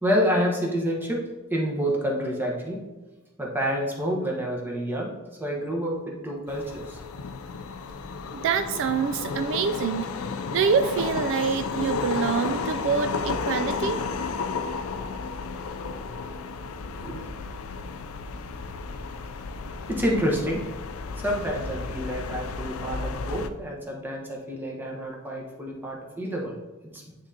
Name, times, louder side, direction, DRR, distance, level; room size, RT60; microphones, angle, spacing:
voice 1, 0.0-2.8 3.4-5.1 5.4-7.0 17.0-17.2 19.9-20.6 21.2-26.6 26.9-27.0, equal, 10° right, -2 dB, 1.0 m, -28 dB
sound 1, 6.5-23.5, left 4 dB, 70° left, 0.4 m, -33 dB
voice 2, 8.3-10.1 10.5-14.0, right 6 dB, 60° right, 9 dB, 0.3 m, -26 dB
9.7 x 3.7 x 2.8 m, 1.2 s
head